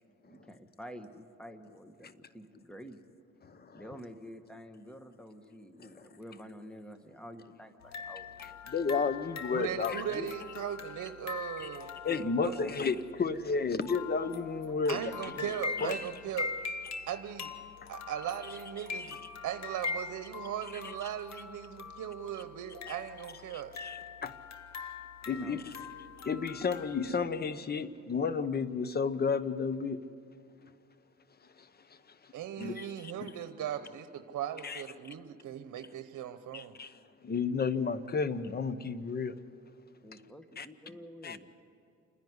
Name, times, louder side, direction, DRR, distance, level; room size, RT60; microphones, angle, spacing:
voice 1, 0.3-3.0 3.7-8.6 12.2-12.7 25.3-25.6 40.0-41.5, equal, 5° left, 1.4 m, -49 dB
voice 2, 3.4-3.8 5.8-6.0 8.4-10.3 11.6-11.7 12.0-16.0 18.8-19.2 20.7-20.9 22.9-23.0 23.5-24.4 25.2-25.9 26.2-30.0 30.6-30.7 31.4-33.4 34.6-34.8 36.5-39.4 40.6-40.7 41.2-41.4, left 5 dB, 30° left, 0.9 m, -33 dB
sound 1, 7.8-27.2, left 5 dB, 60° left, 1.3 m, -43 dB
voice 3, 9.5-11.9 12.4-12.8 14.9-16.6 17.1-17.5 17.9-23.8 32.3-36.8, right 10 dB, 70° right, 1.0 m, -38 dB
28.5 x 10.5 x 9.6 m
cardioid pair, 90°, 30 cm